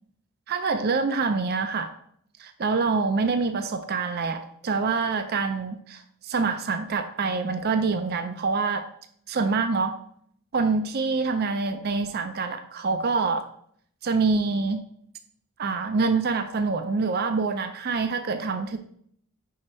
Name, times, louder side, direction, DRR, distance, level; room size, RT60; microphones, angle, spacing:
voice 1, 0.5-1.9 2.4-8.8 9.3-10.0 10.5-13.4 14.0-14.8 15.6-18.8, right 4 dB, 45° right, 8 dB, 0.4 m, -26 dB
5.0 x 4.7 x 4.3 m, 0.65 s
head